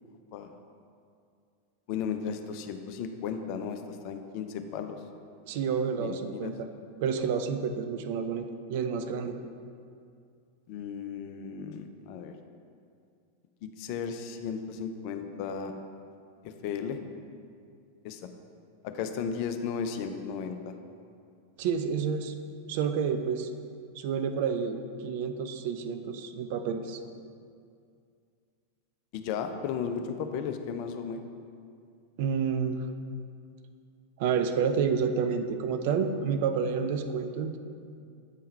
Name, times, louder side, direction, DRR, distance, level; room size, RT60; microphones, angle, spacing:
voice 1, 1.9-5.0 6.0-6.5 10.7-12.3 13.6-15.7 16.4-17.0 18.0-18.2 18.8-20.7 29.1-31.2, left 6 dB, 45° left, 7 dB, 0.4 m, -35 dB
voice 2, 5.5-6.7 7.0-9.4 21.6-22.3 22.7-23.5 24.0-27.0 32.2-32.9 34.2-37.6, right 6 dB, 50° right, 7 dB, 0.4 m, -29 dB
8.0 x 3.8 x 4.1 m, 2.3 s
figure-of-eight pair, 90°, 0 cm